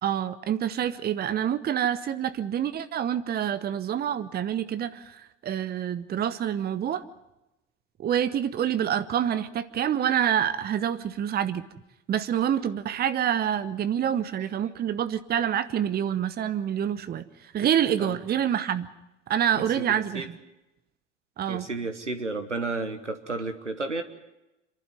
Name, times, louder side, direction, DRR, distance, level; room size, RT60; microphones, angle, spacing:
voice 1, 0.0-7.0 8.0-11.6 12.1-17.2 17.5-18.9 19.3-20.4 21.4-21.6, right 9 dB, 25° right, 13 dB, 1.0 m, -27 dB
voice 2, 19.9-20.3 21.5-24.0, right 3 dB, 90° right, 8 dB, 1.3 m, -32 dB
27.5 x 11.5 x 9.4 m, 0.95 s
figure-of-eight pair, 70°, 35 cm